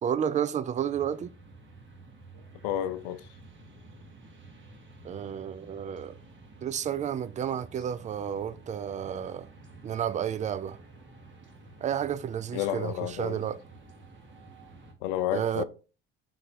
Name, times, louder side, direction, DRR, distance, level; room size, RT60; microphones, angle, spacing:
voice 1, 0.0-1.3 5.0-6.1 6.6-9.5 9.8-10.8 11.8-13.6 15.3-15.6, right 9 dB, 25° right, 0.4 m, -31 dB
sound 1, 0.7-14.9, right 2 dB, 40° right, 1.5 m, -51 dB
voice 2, 2.6-3.3 12.5-13.5 15.0-15.6, left 12 dB, 80° left, 0.5 m, -31 dB
3.8 x 3.1 x 4.3 m
hypercardioid pair, 65°, 29 cm